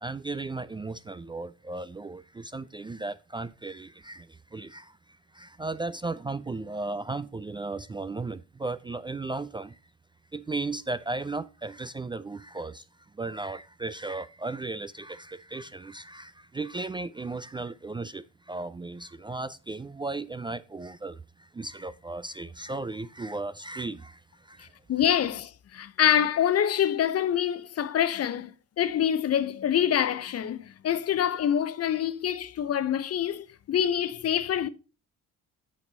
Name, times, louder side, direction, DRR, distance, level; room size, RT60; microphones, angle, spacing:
voice 1, 0.0-9.8 10.3-12.9 13.1-24.7, right 3 dB, 15° right, 0.3 m, -36 dB
voice 2, 24.6-34.7, left 9 dB, 55° left, 0.7 m, -26 dB
8.7 x 5.2 x 3.9 m
cardioid pair, 90°, 30 cm